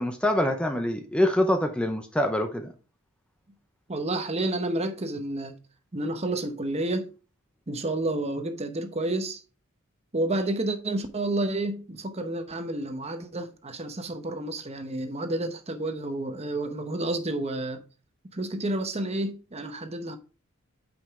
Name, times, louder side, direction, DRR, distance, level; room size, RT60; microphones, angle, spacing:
voice 1, 0.0-2.7, left 1 dB, 5° left, 0.6 m, -25 dB
voice 2, 3.9-5.6 5.9-7.1 7.7-9.4 10.1-17.8 18.3-20.2, right 2 dB, 30° right, 0.9 m, -30 dB
8.7 x 5.3 x 3.6 m
head